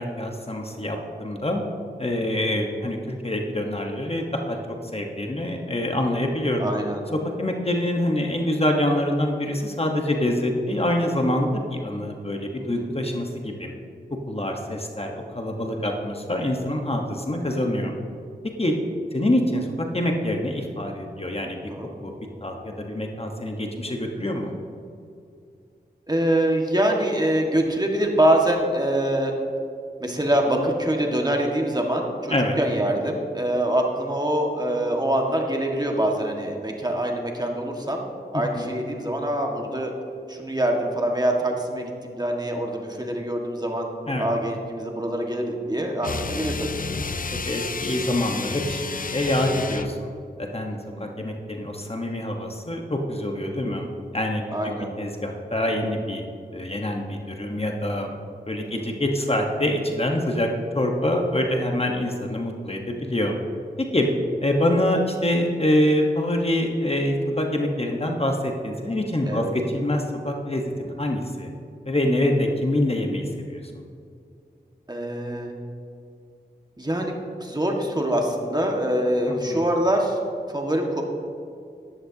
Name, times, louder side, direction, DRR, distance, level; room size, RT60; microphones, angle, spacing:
voice 1, 0.0-1.6 2.0-6.7 7.1-13.7 14.3-18.0 18.6-18.7 19.1-19.7 19.9-21.6 22.0-22.1 22.4-24.5 32.3-32.5 38.5-38.7 44.1-44.3 47.3-48.8 49.1-50.1 50.4-53.9 54.1-56.2 56.5-58.1 58.5-60.5 60.7-63.3 63.9-64.1 64.4-71.5 71.9-73.8 79.3-79.6, left 1 dB, 35° left, 2 dB, 1.2 m, -25 dB
voice 2, 6.6-7.0 12.6-12.9 21.6-21.9 26.1-29.3 30.0-38.0 38.3-39.9 40.3-43.9 44.2-47.0 50.7-51.1 54.5-54.9 58.6-58.9 69.3-69.5 74.9-75.5 76.8-77.1 77.4-80.2 80.5-81.0, right 1 dB, 25° right, 1 dB, 1.7 m, -24 dB
sound 1, 46.0-50.0, left 4 dB, 50° left, 0.6 m, -31 dB
13.0 x 11.0 x 2.8 m, 2.4 s
cardioid pair, 40°, 18 cm